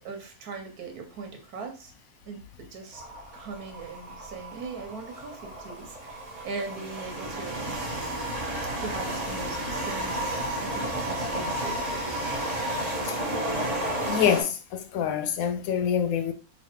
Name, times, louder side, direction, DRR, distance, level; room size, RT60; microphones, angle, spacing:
voice 1, 0.0-1.9 2.3-3.0 3.3-7.8 8.8-11.8, right 4 dB, 85° right, 1.4 m, -40 dB
sound 1, 2.9-14.4, right 1 dB, 30° right, 1.0 m, -32 dB
sound 2, 7.7-14.4, right 1 dB, 55° right, 0.9 m, -46 dB
voice 2, 14.1-16.3, left 8 dB, 75° left, 1.0 m, -26 dB
3.2 x 2.5 x 4.4 m
omnidirectional pair, 1.6 m